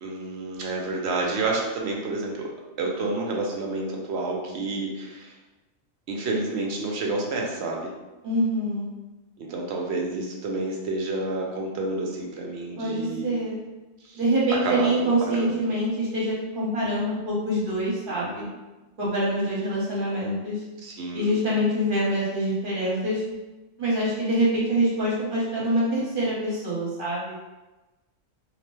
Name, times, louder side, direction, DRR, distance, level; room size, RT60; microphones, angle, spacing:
voice 1, 0.0-2.5 2.8-5.3 6.1-7.9 9.4-13.4 14.0-14.2 14.6-15.6 18.1-18.5 20.8-21.3, right 2 dB, 65° right, -1 dB, 0.7 m, -29 dB
voice 2, 8.2-8.9 12.8-13.6 14.1-18.5 19.0-20.6 21.1-23.2 23.8-27.4, right 1 dB, 45° right, -7 dB, 1.1 m, -25 dB
2.9 x 2.1 x 3.0 m, 1.1 s
omnidirectional pair, 1.4 m